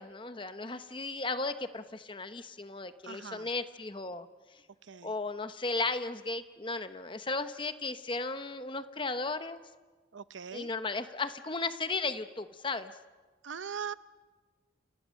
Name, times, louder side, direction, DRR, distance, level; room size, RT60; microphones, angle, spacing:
voice 1, 0.0-4.3 5.0-9.6 10.5-12.9, left 3 dB, 25° left, 10 dB, 1.0 m, -35 dB
voice 2, 3.1-3.5 4.9-5.1 10.1-10.7 13.4-13.9, right 6 dB, 85° right, 14 dB, 0.8 m, -40 dB
30.0 x 28.5 x 6.5 m, 1.3 s
head